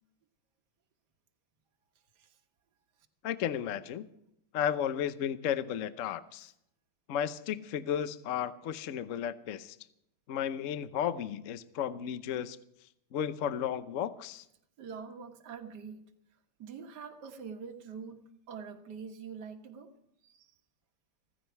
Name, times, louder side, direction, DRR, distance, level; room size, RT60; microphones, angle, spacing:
voice 1, 3.2-4.1 4.5-6.5 7.1-9.8 10.3-12.6 13.1-14.4, left 9 dB, 65° left, 13 dB, 0.7 m, -33 dB
voice 2, 14.8-16.0 16.6-19.9 20.2-20.5, right 6 dB, 55° right, 4 dB, 1.9 m, -45 dB
16.0 x 15.0 x 4.6 m, 0.74 s
omnidirectional pair, 2.3 m